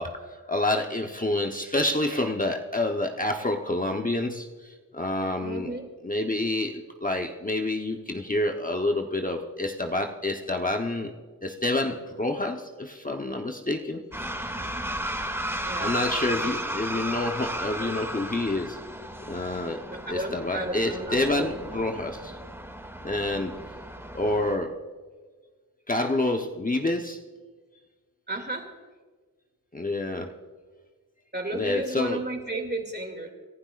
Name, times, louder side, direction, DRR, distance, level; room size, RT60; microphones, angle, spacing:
voice 1, 0.0-5.7 6.0-11.1 11.4-14.0 15.8-18.8 19.3-19.8 20.1-22.4 23.0-23.6 24.1-24.8 25.9-27.2 29.7-30.3 31.5-32.2, left 2 dB, 25° left, 3 dB, 1.0 m, -28 dB
voice 2, 5.4-5.9 15.6-16.5 19.9-21.6 28.3-28.7 31.3-33.3, right 2 dB, 30° right, 3 dB, 2.6 m, -33 dB
sound 1, 14.1-24.6, right 1 dB, 5° right, 2.4 m, -34 dB
28.0 x 11.5 x 2.5 m, 1.4 s
cardioid pair, 45°, 35 cm